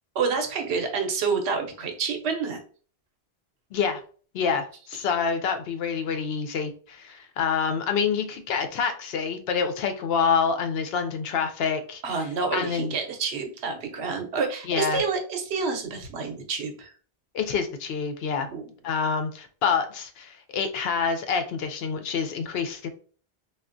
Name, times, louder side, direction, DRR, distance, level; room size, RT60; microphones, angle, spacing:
voice 1, 0.1-2.6 12.0-16.9 18.5-18.6, right 5 dB, 85° right, 4 dB, 1.0 m, -28 dB
voice 2, 3.7-4.0 4.3-12.0 12.5-12.9 14.7-15.0 17.3-18.5 18.8-22.9, left 6 dB, 75° left, 7 dB, 0.8 m, -27 dB
3.3 x 2.4 x 2.5 m, 0.41 s
omnidirectional pair, 1.1 m